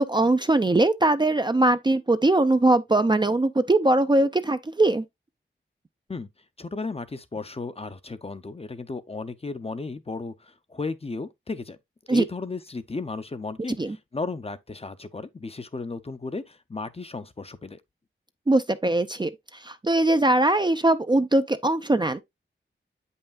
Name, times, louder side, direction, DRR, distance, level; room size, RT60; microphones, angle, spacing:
voice 1, 0.0-5.0 12.1-12.2 13.8-14.0 18.5-19.3 19.6-22.2, right 2 dB, 20° right, 0.4 m, -21 dB
voice 2, 6.6-11.8 12.1-17.8, left 3 dB, 30° left, 0.6 m, -34 dB
7.9 x 5.5 x 2.3 m
wide cardioid pair, 80°, 20 cm